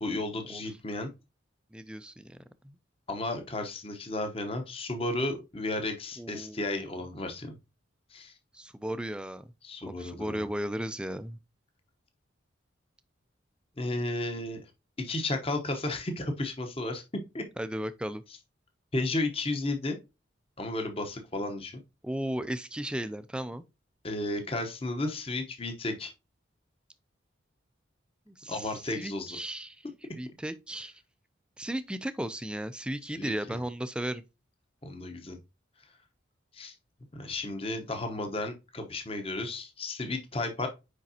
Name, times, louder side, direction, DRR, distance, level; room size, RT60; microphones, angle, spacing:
voice 1, 0.0-1.1 3.1-7.6 8.1-8.3 9.6-10.5 13.8-14.6 15.0-17.4 18.9-20.0 20.6-21.8 24.0-26.1 28.5-29.4 33.1-33.6 34.8-35.4 36.5-36.7 37.1-40.7, left 2 dB, 30° left, 1.0 m, -33 dB
voice 2, 1.7-2.4 2.6-2.8 6.2-6.8 8.5-9.5 9.9-11.4 17.6-18.2 22.0-23.6 28.3-29.8 30.1-30.9 31.6-34.2, right 1 dB, 5° right, 0.4 m, -35 dB
6.4 x 5.2 x 2.8 m
head